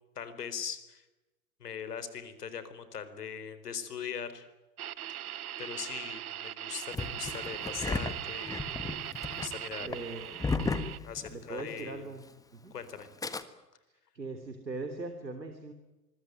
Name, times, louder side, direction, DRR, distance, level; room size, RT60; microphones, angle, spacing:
voice 1, 0.2-1.0 1.6-4.5 5.1-9.0 9.3-10.0 11.0-12.0 12.7-13.1, left 7 dB, 70° left, 12 dB, 4.3 m, -41 dB
sound 1, 4.8-11.0, right 12 dB, 60° right, 1.3 m, -40 dB
Engine starting, 6.9-11.8 12.0-12.1 13.0-13.4, left 3 dB, 5° left, 1.5 m, -34 dB
voice 2, 9.8-10.9 11.3-12.2 12.5-12.7 13.9-15.7, right 3 dB, 90° right, 7 dB, 3.2 m, -41 dB
26.0 x 22.0 x 9.3 m, 1.0 s
figure-of-eight pair, 105°, 49 cm